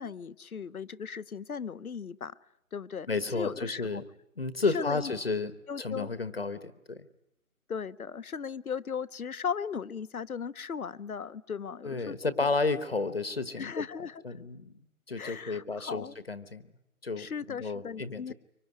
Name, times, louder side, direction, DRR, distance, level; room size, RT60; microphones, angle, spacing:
voice 1, 0.0-2.4 2.7-3.1 3.3-4.0 4.7-5.1 5.7-6.1 7.7-12.1 12.4-12.5 13.6-14.2 15.2-16.2 17.2-18.3, left 6 dB, 75° left, 14 dB, 1.0 m, -37 dB
voice 2, 3.1-4.0 4.4-7.1 11.8-13.8 14.2-14.7 15.1-16.6 17.0-18.3, left 3 dB, 40° left, 13 dB, 1.2 m, -32 dB
25.5 x 24.5 x 9.5 m, 0.83 s
hypercardioid pair, 180°, 44 cm